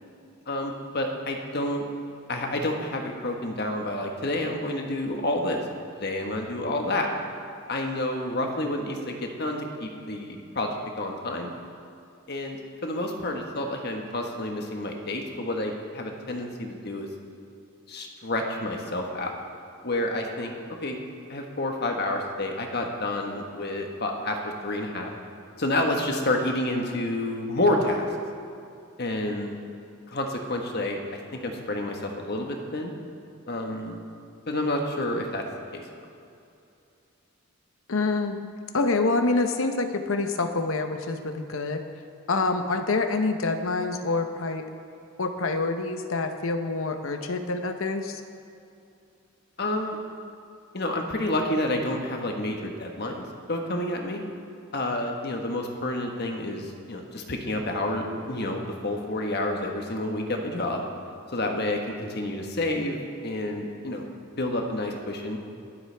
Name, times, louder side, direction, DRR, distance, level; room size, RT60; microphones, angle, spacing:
voice 1, 0.5-1.8 2.3-5.6 6.0-7.1 7.7-11.5 12.3-17.1 17.9-19.3 19.8-20.5 20.8-21.0 21.3-25.1 25.6-28.0 29.0-29.6 30.1-31.0 31.3-32.9 33.5-34.0 34.5-35.4 35.7-36.0 49.6-50.0 50.7-54.2 54.7-60.8 61.3-64.1 64.4-65.4, left 1 dB, 50° left, 2 dB, 1.4 m, -29 dB
voice 2, 37.9-38.4 38.7-41.8 42.3-44.6 45.2-48.2, left 3 dB, 70° left, 7 dB, 0.8 m, -26 dB
23.0 x 7.9 x 3.4 m, 2.6 s
head